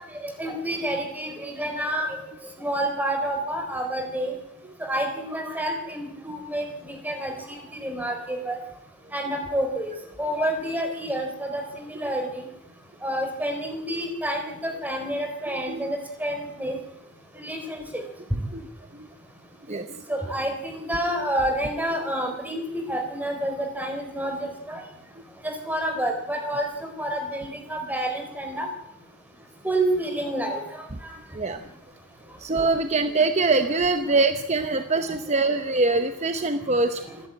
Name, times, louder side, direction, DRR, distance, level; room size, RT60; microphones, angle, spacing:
voice 1, 0.2-2.1 2.6-4.3 4.8-8.6 9.1-9.9 10.2-12.4 13.0-16.8 17.4-18.0 20.1-24.8 25.4-28.7 29.6-31.1 37.1-37.2, right 1 dB, 10° right, 4 dB, 4.1 m, -29 dB
voice 2, 19.7-20.0 31.3-31.6 32.4-37.2, right 3 dB, 30° right, 8 dB, 0.9 m, -24 dB
27.0 x 11.5 x 8.9 m, 0.83 s
head